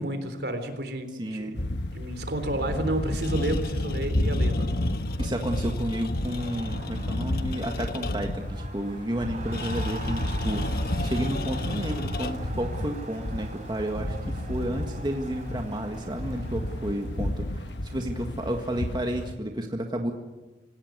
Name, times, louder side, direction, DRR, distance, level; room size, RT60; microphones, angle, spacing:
voice 1, 0.0-1.6 1.9-4.7, right 1 dB, 65° right, 8 dB, 3.7 m, -31 dB
voice 2, 1.2-1.6 5.2-10.7 11.0-20.1, right 1 dB, 25° right, 3 dB, 1.7 m, -31 dB
sound 1, 1.6-19.3, left 1 dB, 85° left, 1.4 m, -31 dB
sound 2, 3.1-8.5 9.5-12.6, left 3 dB, 60° left, 1.4 m, -39 dB
Crowd, 6.0-18.5, right 2 dB, 40° right, 6.1 m, -45 dB
26.0 x 17.5 x 9.4 m, 1.2 s
head